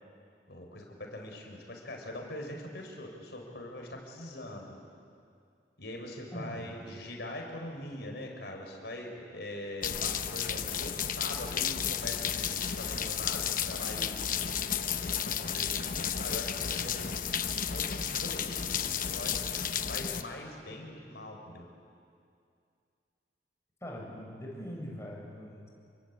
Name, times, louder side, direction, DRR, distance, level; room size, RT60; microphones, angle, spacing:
voice 1, 0.5-4.8 5.8-14.2 15.2-21.7, left 1 dB, 65° left, 2 dB, 5.5 m, -43 dB
voice 2, 6.3-6.8 23.8-25.7, equal, 15° left, -2 dB, 7.1 m, -42 dB
sound 1, 9.8-20.2, left 8 dB, 50° left, 1.0 m, -32 dB
29.0 x 23.5 x 8.8 m, 2.4 s
head